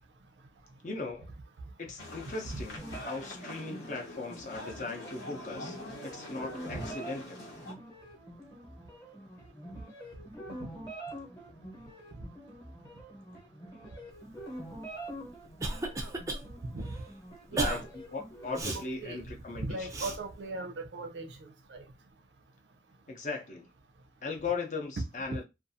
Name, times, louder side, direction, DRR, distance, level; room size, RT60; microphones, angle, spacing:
voice 1, 0.8-1.3 1.8-5.8 6.0-7.4 17.5-17.8 18.1-19.9 23.1-23.7 24.2-25.4, left 3 dB, 45° left, 0.6 m, -38 dB
sound 1, 2.0-7.7, left 1 dB, 75° left, 0.9 m, -45 dB
sound 2, 2.8-18.6, right 1 dB, 20° left, 0.9 m, -46 dB
Cough, 15.0-16.4 16.8-17.0 17.6-17.8 18.6-18.8 19.9-20.2, right 2 dB, 20° right, 0.4 m, -33 dB
voice 2, 17.5-17.9 18.5-19.2 19.5-21.3 21.7-21.9, right 2 dB, 80° right, 0.5 m, -38 dB
2.5 x 2.3 x 2.6 m
head